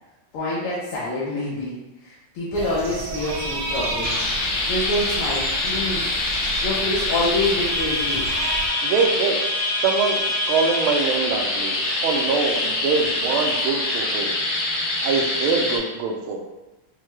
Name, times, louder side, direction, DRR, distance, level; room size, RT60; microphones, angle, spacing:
voice 1, 0.3-4.3 4.7-6.1 6.6-8.3, left 1 dB, 80° left, -7 dB, 1.7 m, -26 dB
sound 1, 2.5-8.7, right 2 dB, 65° right, 1.2 m, -32 dB
sound 2, 4.0-15.8, left 2 dB, 65° left, 1.3 m, -25 dB
voice 2, 8.8-9.4 9.8-11.7 12.0-14.3 15.0-16.4, right 5 dB, 80° right, 2 dB, 1.5 m, -23 dB
5.5 x 2.2 x 3.1 m, 1.1 s
omnidirectional pair, 2.4 m